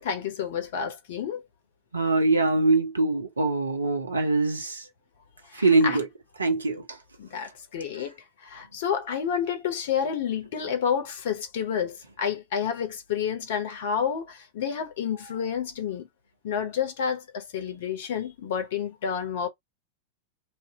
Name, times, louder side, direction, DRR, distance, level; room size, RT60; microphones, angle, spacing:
voice 1, 0.0-1.4 5.5-6.0 7.2-8.1 8.4-16.1 16.4-19.5, left 7 dB, 55° left, 0.9 m, -29 dB
voice 2, 1.9-4.8 5.6-6.1 6.4-6.8, right 3 dB, 75° right, 0.7 m, -23 dB
2.7 x 2.5 x 3.5 m
figure-of-eight pair, 90°, 0 cm